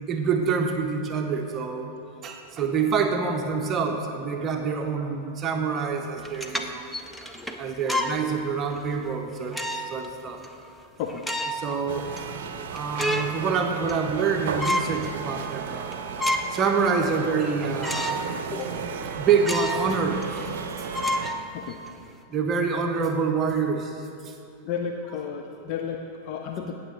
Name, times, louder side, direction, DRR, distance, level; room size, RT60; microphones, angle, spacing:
voice 1, 0.1-1.9 2.2-6.8 7.6-10.4 11.5-12.3 12.7-18.4 19.1-20.9 22.3-24.3, right 5 dB, 30° right, 3 dB, 0.8 m, -27 dB
sound 1, 6.2-8.2 8.7-8.9 9.5-10.1 10.4-10.5 11.1-11.7 12.2-12.3 12.6-13.4 13.8-14.3 14.6-15.0 15.4-15.5 15.9-16.6 17.0-17.1 17.8-18.3 18.6-18.7 19.4-19.9 20.2-20.3 20.9-21.9, left 1 dB, ahead, 0.6 m, -29 dB
sound 2, 11.9-21.3, right 6 dB, 55° right, 0.7 m, -34 dB
voice 2, 24.6-26.7, left 7 dB, 45° left, 3 dB, 0.6 m, -32 dB
17.5 x 7.0 x 3.9 m, 2.5 s
figure-of-eight pair, 90°, 0 cm